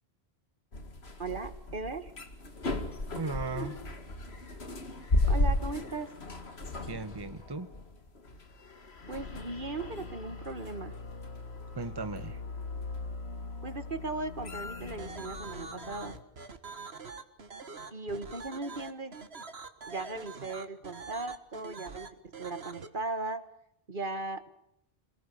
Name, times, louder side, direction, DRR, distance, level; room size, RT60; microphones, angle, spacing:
sound 1, 0.7-16.2, left 2 dB, 90° left, 2.4 m, -36 dB
voice 1, 1.2-2.1 5.3-6.1 9.1-11.0 13.6-16.2 17.9-19.1 19.9-22.1 22.4-23.4 23.9-24.5, right 3 dB, 55° right, 12 dB, 1.7 m, -37 dB
voice 2, 3.1-3.8 6.9-7.7 11.7-12.4, right 3 dB, 25° right, 10 dB, 1.3 m, -36 dB
sound 2, 15.0-22.9, right 4 dB, 85° right, 2.0 m, -44 dB
27.5 x 19.0 x 6.9 m, 0.77 s
omnidirectional pair, 1.0 m